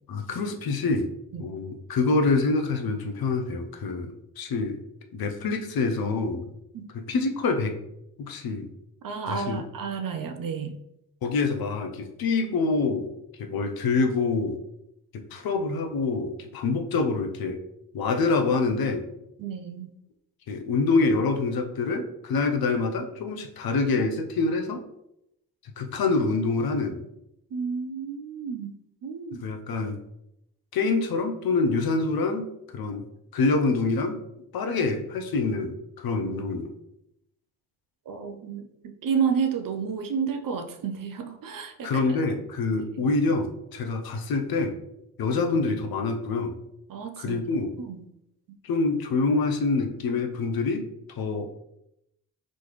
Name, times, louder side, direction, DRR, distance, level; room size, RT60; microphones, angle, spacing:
voice 1, 0.1-1.1 1.4-4.8 5.1-6.5 6.9-7.8 8.2-8.7 9.2-9.6 11.2-13.1 13.4-14.6 15.1-17.6 17.9-19.1 20.5-24.8 25.8-27.0 29.4-30.0 30.7-33.0 33.3-34.2 34.5-36.7 41.8-44.8 45.2-46.6 47.2-47.7 48.6-50.8 51.2-51.5, left 3 dB, 50° left, 5 dB, 0.7 m, -26 dB
voice 2, 9.0-10.8 19.4-19.9 27.5-28.7 29.0-29.4 38.1-38.7 39.0-42.0 42.9-43.1 46.9-48.0, right 6 dB, 45° right, 6 dB, 0.6 m, -31 dB
4.2 x 3.1 x 3.1 m, 0.83 s
hypercardioid pair, 40°, 47 cm